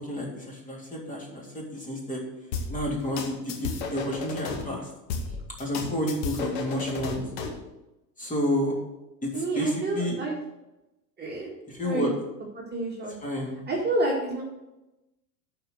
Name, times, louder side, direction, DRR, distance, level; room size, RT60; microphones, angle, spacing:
voice 1, 0.1-2.2 2.7-4.9 5.6-7.2 8.2-8.7 9.2-10.2 11.8-12.1 13.2-13.6, equal, 15° left, -2 dB, 3.1 m, -30 dB
sound 1, 2.5-4.6 5.1-7.6, left 5 dB, 50° left, 1.9 m, -33 dB
voice 2, 9.3-10.4 11.2-11.5 11.8-12.1 12.6-13.1 13.7-14.4, right 2 dB, 20° right, -3 dB, 2.2 m, -29 dB
11.5 x 5.0 x 6.5 m, 0.98 s
figure-of-eight pair, 90°, 50 cm